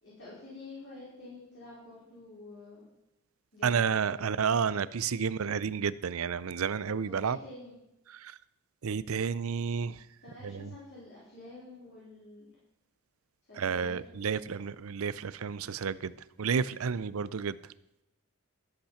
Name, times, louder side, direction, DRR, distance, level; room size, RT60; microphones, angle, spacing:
voice 1, 0.0-2.8 3.5-4.4 5.2-5.5 7.1-7.8 10.2-12.5 13.5-14.4, left 2 dB, 55° left, -9 dB, 4.7 m, -49 dB
voice 2, 3.6-7.4 8.1-8.4 8.8-10.0 10.4-10.7 13.6-17.6, right 6 dB, 80° right, 18 dB, 0.5 m, -31 dB
13.5 x 8.6 x 5.7 m, 0.88 s
head